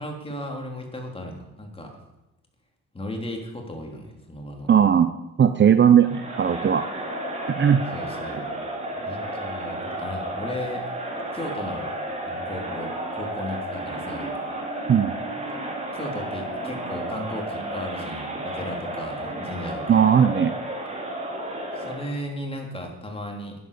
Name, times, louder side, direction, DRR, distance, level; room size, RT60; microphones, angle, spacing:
voice 1, 0.0-1.9 2.9-4.7 7.9-8.5 9.0-10.9 11.3-12.0 12.3-14.3 15.9-20.0 21.7-23.5, left 1 dB, 20° left, 2 dB, 3.4 m, -35 dB
voice 2, 4.7-5.1 5.4-6.8 7.6-7.8 14.9-15.1 19.9-20.5, right 8 dB, 40° right, 10 dB, 0.7 m, -17 dB
Crowd, 6.0-22.2, right 1 dB, 20° right, 3.6 m, -32 dB
11.0 x 10.0 x 6.7 m, 0.93 s
cardioid pair, 90°, 30 cm